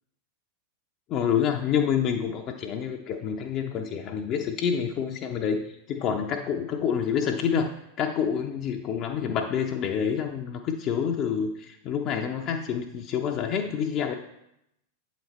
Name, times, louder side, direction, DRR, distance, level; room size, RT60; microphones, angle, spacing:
voice 1, 1.1-7.7 8.0-14.1, left 7 dB, 35° left, 3 dB, 0.5 m, -27 dB
7.7 x 4.2 x 4.1 m, 0.81 s
figure-of-eight pair, 90°, 0 cm